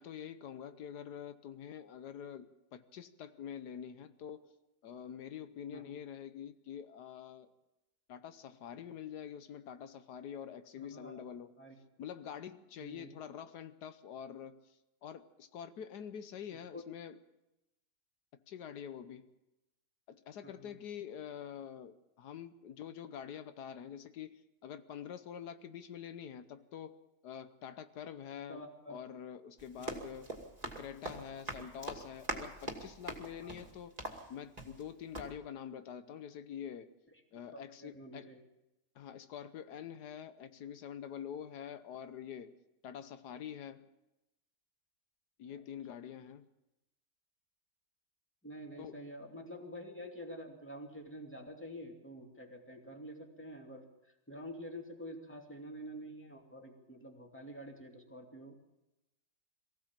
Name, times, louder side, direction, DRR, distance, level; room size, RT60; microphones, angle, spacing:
voice 1, 0.0-4.5 4.8-7.5 8.1-11.6 12.0-17.2 18.5-19.3 20.1-28.6 28.9-30.3 30.6-33.9 34.3-36.9 37.3-38.3 38.9-42.5 42.8-43.9 45.4-46.5 48.8-49.0, left 8 dB, 85° left, 1.5 m, -46 dB
voice 2, 10.8-11.3 11.6-11.8 12.8-13.1 16.7-16.8 20.4-20.8 28.5-29.0 29.8-29.9 33.4-33.5 37.5-38.4 45.5-45.6 48.4-58.6, equal, 5° left, 2.7 m, -48 dB
Run, 29.6-34.9 35.1-35.3, right 1 dB, 25° right, 2.5 m, -43 dB
23.0 x 15.5 x 7.4 m
omnidirectional pair, 1.7 m